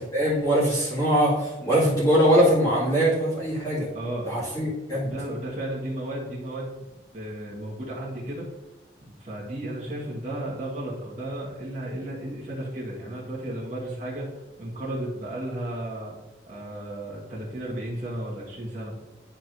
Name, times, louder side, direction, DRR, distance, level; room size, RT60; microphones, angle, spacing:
voice 1, 0.1-3.9 4.2-5.1, equal, 20° left, -9 dB, 2.0 m, -22 dB
voice 2, 3.9-4.7 5.0-6.9 7.1-8.5 9.2-14.3 14.6-16.1 16.5-18.9, right 1 dB, 40° right, -7 dB, 1.6 m, -34 dB
10.5 x 4.5 x 2.6 m, 1.0 s
head